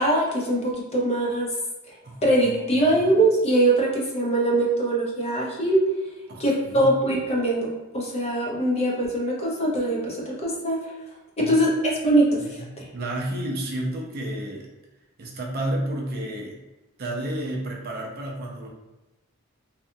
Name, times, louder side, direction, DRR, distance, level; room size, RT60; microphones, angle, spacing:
voice 1, 0.0-1.5 2.2-5.9 6.4-10.8 11.4-12.8, right 1 dB, 30° left, -3 dB, 0.6 m, -22 dB
voice 2, 2.0-3.1 6.3-6.9 11.4-11.6 12.4-14.7 15.2-16.6 17.0-18.7, right 1 dB, 45° right, -1 dB, 0.5 m, -31 dB
2.7 x 2.3 x 2.5 m, 1.0 s
head